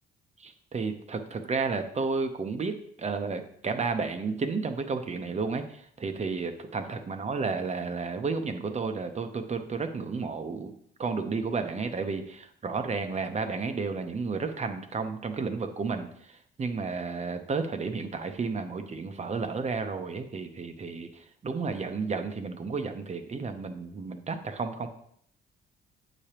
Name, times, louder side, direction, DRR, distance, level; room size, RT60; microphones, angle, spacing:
voice 1, 0.4-10.7 11.0-24.9, right 4 dB, 35° right, 7 dB, 0.8 m, -32 dB
8.3 x 5.0 x 3.0 m, 0.67 s
cardioid pair, 90°, 20 cm